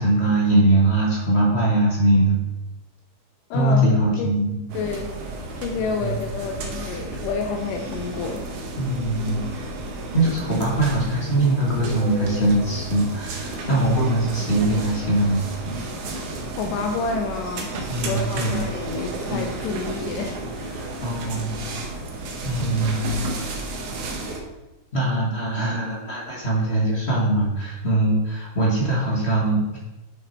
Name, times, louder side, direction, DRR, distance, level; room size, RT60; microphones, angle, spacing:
voice 1, 0.0-2.4 3.5-4.7 6.0-6.1 8.8-9.7 10.1-15.4 17.9-18.6 21.0-21.6 22.4-23.3 24.9-29.8, right 1 dB, 45° left, -3 dB, 0.8 m, -21 dB
voice 2, 3.5-3.9 4.2-4.3 4.7-8.5 16.6-17.7 18.1-21.0, left 4 dB, 90° left, 3 dB, 2.3 m, -29 dB
sound 1, 4.7-24.4, right 2 dB, 70° right, 2.6 m, -32 dB
9.2 x 6.0 x 4.4 m, 1.0 s
omnidirectional pair, 3.8 m